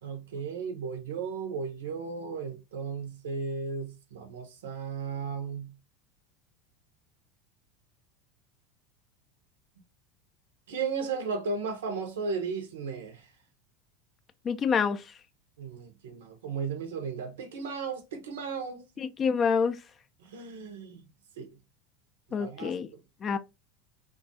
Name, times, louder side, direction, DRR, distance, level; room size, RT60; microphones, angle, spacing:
voice 1, 0.0-5.7 10.7-13.3 15.6-18.9 20.2-21.0 21.4-21.5 22.3-23.0, right 5 dB, 70° right, 0.6 m, -35 dB
voice 2, 14.5-15.0 19.0-19.8 22.3-22.9 23.2-23.4, left 6 dB, 30° left, 0.3 m, -27 dB
2.3 x 2.3 x 2.6 m
figure-of-eight pair, 80°, 0 cm